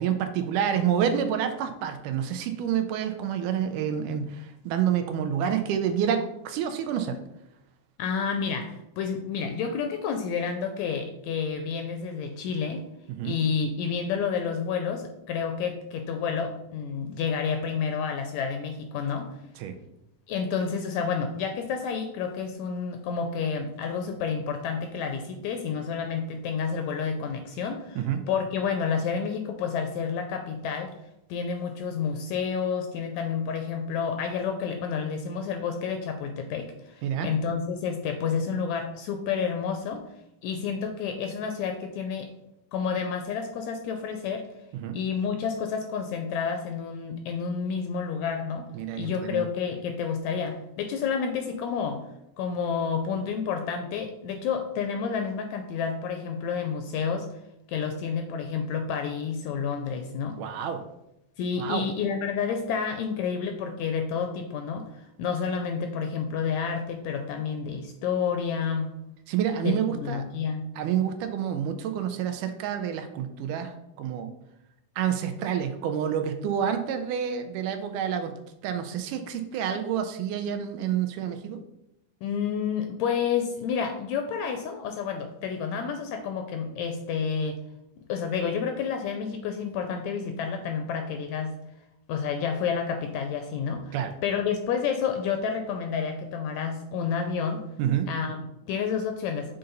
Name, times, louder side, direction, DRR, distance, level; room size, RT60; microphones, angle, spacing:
voice 1, 0.0-7.2 13.1-13.4 19.6-19.8 28.0-28.2 37.0-37.3 44.7-45.0 48.7-49.4 60.4-60.8 61.6-61.9 69.3-70.3 70.8-74.3 75.0-78.3 78.6-81.6 93.9-94.1 97.8-98.1, right 9 dB, 85° right, 7 dB, 2.1 m, -28 dB
voice 2, 8.0-12.8 13.2-19.4 20.3-30.9 31.3-40.0 40.4-42.3 42.7-44.5 44.9-48.7 48.9-52.0 52.4-57.3 57.7-60.4 61.4-68.9 69.6-70.6 82.2-87.6 88.1-91.5 92.1-93.9 94.2-97.7 98.1-99.6, left 6 dB, 80° left, 5 dB, 1.7 m, -30 dB
6.8 x 3.9 x 3.9 m, 0.85 s
omnidirectional pair, 3.6 m